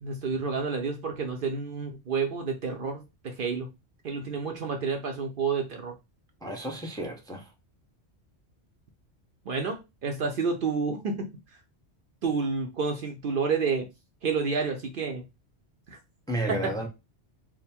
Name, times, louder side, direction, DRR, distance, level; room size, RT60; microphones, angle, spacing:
voice 1, 0.0-3.7 4.0-5.9 9.5-11.3 12.2-13.9 14.2-15.2 15.9-16.0 16.5-16.6, right 5 dB, 60° right, 0.7 m, -29 dB
voice 2, 6.4-7.4 16.3-16.9, right 1 dB, 5° left, 0.6 m, -32 dB
3.6 x 2.1 x 4.3 m
omnidirectional pair, 1.2 m